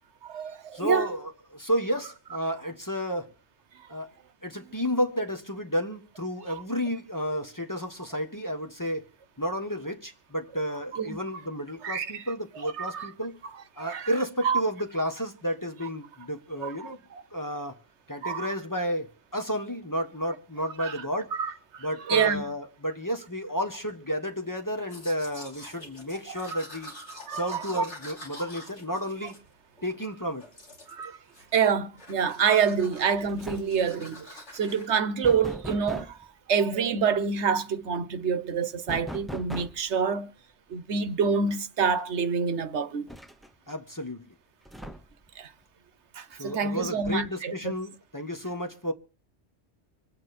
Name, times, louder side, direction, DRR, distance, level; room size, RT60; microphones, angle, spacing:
voice 1, 0.2-1.1 10.9-11.2 11.8-12.2 12.6-13.1 13.8-14.1 14.4-14.6 16.6-17.2 18.2-18.5 20.8-21.0 21.3-22.4 26.4-26.6 27.3-27.8 30.9-31.2 31.5-36.2 36.5-40.3 40.7-43.1 45.4-45.5 46.1-47.7, right 6 dB, 75° right, 1.2 m, -27 dB
voice 2, 0.7-3.3 3.9-4.1 4.4-9.0 9.4-13.4 13.8-17.0 17.3-17.7 18.1-21.3 21.8-26.9 27.3-29.3 29.8-30.4 43.7-44.3 46.4-48.9, equal, 15° left, 1.1 m, -31 dB
Domestic sounds home sounds, 24.8-30.0 30.4-31.0 31.3-31.7 32.0-34.9, left 1 dB, 80° left, 4.1 m, -47 dB
sound 1, 32.8-33.0 33.2-33.9 35.2-36.2 38.9-39.9 41.5-41.6 42.0-42.1 43.1-43.7 44.7-45.3, equal, ahead, 0.6 m, -40 dB
25.0 x 8.7 x 4.2 m
omnidirectional pair, 1.2 m